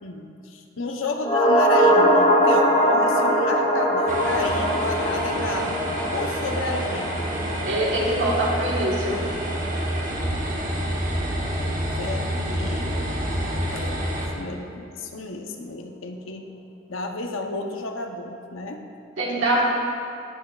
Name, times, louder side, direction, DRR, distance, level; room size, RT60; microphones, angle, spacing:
voice 1, 0.0-7.2 11.7-13.1 13.7-14.0 14.3-16.4 16.9-18.8, left 2 dB, 90° left, 4 dB, 0.8 m, -31 dB
sound 1, 1.2-9.7 10.0-10.1, equal, 25° left, 1.9 m, -22 dB
sound 2, 4.1-14.3, right 1 dB, 40° right, 1.2 m, -28 dB
voice 2, 7.6-9.2 19.2-19.6, right 1 dB, 75° right, -5 dB, 1.5 m, -23 dB
17.5 x 6.1 x 2.4 m, 2.5 s
head